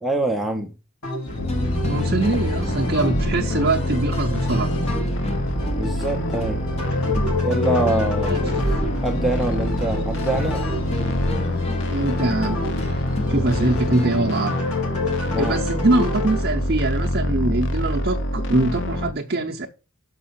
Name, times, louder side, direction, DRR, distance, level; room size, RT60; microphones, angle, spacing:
voice 1, 0.0-0.7 5.8-6.7 7.4-8.5 9.0-10.6 15.3-15.7, right 1 dB, ahead, 0.6 m, -25 dB
sound 1, 1.0-16.4, left 2 dB, 90° left, 2.7 m, -30 dB
sound 2, 1.3-14.3, equal, 30° left, 0.9 m, -30 dB
sound 3, 1.4-19.1, left 1 dB, 55° left, 0.6 m, -26 dB
voice 2, 1.8-4.7 8.2-8.4 11.9-12.6 13.3-14.6 15.4-19.7, right 2 dB, 45° right, 0.7 m, -23 dB
6.3 x 5.4 x 5.7 m
head